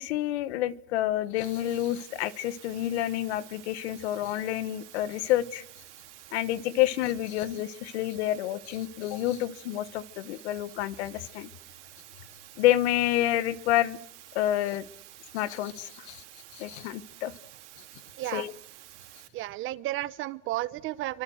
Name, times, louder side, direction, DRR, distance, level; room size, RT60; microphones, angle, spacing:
voice 1, 0.0-5.6 6.3-11.5 12.6-14.0 14.3-14.8 15.3-16.2 16.5-17.3 18.3-18.5, left 14 dB, 65° left, 16 dB, 1.5 m, -28 dB
sound 1, 1.4-19.3, right 14 dB, 80° right, 3.8 m, -50 dB
voice 2, 19.3-21.2, right 16 dB, 35° right, 17 dB, 1.0 m, -33 dB
29.0 x 25.0 x 6.5 m, 0.72 s
supercardioid pair, 145°, 35 cm